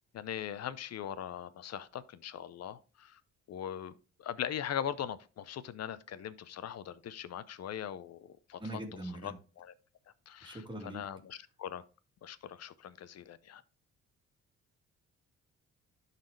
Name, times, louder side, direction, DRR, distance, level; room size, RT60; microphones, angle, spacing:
voice 1, 0.1-3.2 3.5-8.6 9.2-9.3 9.6-9.7 10.3-11.8 12.2-13.6, left 9 dB, 60° left, 0.7 m, -40 dB
voice 2, 8.6-9.4 10.4-11.0, right 1 dB, 15° right, 2.3 m, -42 dB
11.5 x 4.1 x 3.2 m
cardioid pair, 90°, 30 cm